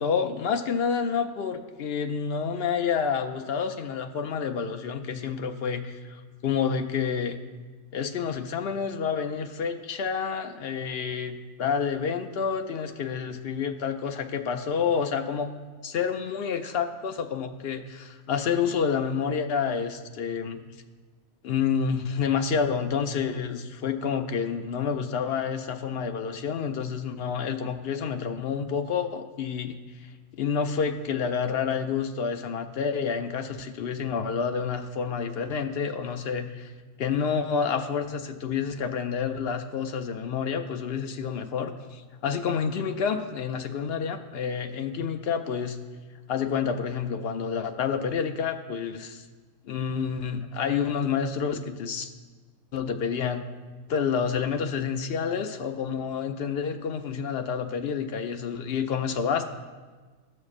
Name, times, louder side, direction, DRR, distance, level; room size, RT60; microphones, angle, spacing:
voice 1, 0.0-5.9 6.4-7.4 7.9-15.5 15.8-20.6 21.4-29.8 30.4-36.7 37.0-45.8 46.3-49.2 49.7-52.1 52.7-53.4 53.9-59.4, left 6 dB, 65° left, 6 dB, 0.6 m, -29 dB
16.0 x 6.5 x 2.4 m, 1.4 s
omnidirectional pair, 1.4 m